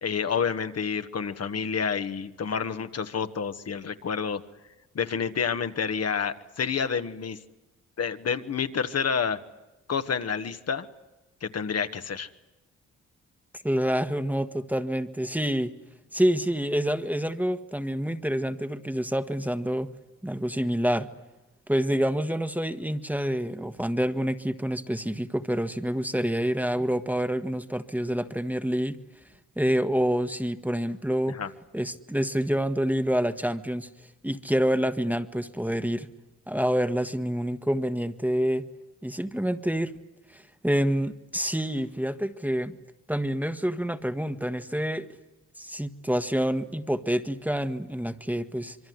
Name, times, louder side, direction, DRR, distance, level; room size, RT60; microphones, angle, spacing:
voice 1, 0.0-4.4 4.9-7.4 8.0-9.4 9.9-10.9 11.4-12.3 31.3-31.5, left 6 dB, 55° left, 9 dB, 1.5 m, -29 dB
voice 2, 13.6-15.7 16.1-19.9 20.2-21.1 21.7-29.0 29.6-31.4 31.7-33.9 34.2-36.1 36.5-38.6 39.0-39.9 40.3-42.7 43.1-45.1 45.6-48.8, equal, 5° right, 10 dB, 1.4 m, -27 dB
26.5 x 23.0 x 9.6 m, 1.1 s
cardioid pair, 80°, 30 cm